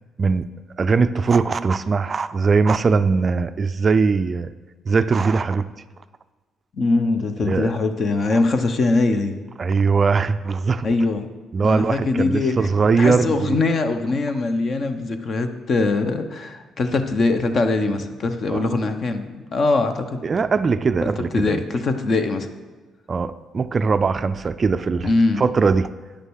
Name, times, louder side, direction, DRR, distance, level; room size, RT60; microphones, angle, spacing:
voice 1, 0.2-0.5 0.8-4.5 4.9-5.7 7.4-7.7 9.6-10.9 11.5-13.6 18.5-18.8 20.2-21.6 23.1-25.1 25.4-25.9, right 4 dB, 35° right, 12 dB, 0.4 m, -20 dB
voice 2, 6.7-9.3 10.8-11.3 11.6-20.3 21.0-22.5 25.0-25.4, left 3 dB, 45° left, 7 dB, 0.9 m, -22 dB
9.9 x 6.5 x 6.4 m, 1.3 s
cardioid pair, 100°, 0 cm